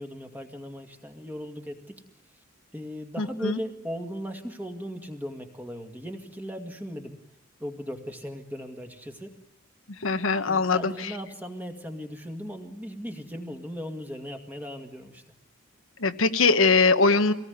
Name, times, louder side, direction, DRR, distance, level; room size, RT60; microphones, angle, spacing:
voice 1, 0.0-2.0 2.7-7.2 7.6-9.4 10.5-15.2, equal, 10° right, 4 dB, 2.1 m, -37 dB
voice 2, 3.2-3.6 10.0-11.1 16.0-17.3, left 4 dB, 75° left, 8 dB, 1.2 m, -22 dB
24.5 x 19.0 x 9.5 m, 0.85 s
head